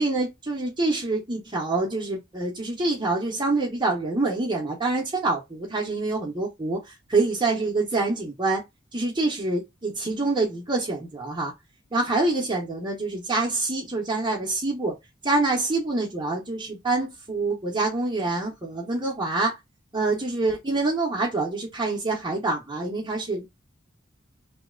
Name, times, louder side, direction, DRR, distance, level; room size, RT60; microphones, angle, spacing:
voice 1, 0.0-8.6 8.9-11.5 11.9-15.0 15.2-19.5 19.9-23.5, right 2 dB, 25° right, 0.8 m, -26 dB
3.1 x 2.9 x 3.6 m
head